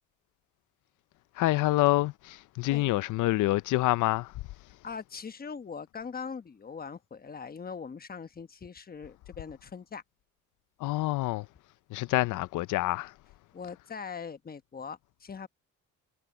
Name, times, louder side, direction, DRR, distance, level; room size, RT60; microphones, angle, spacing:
voice 1, 1.4-4.3 10.8-11.5 11.9-13.1, left 17 dB, 85° left, 0.6 m, -27 dB
voice 2, 4.8-10.0 13.5-15.5, left 6 dB, 30° left, 1.1 m, -41 dB
cardioid pair, 90°, 30 cm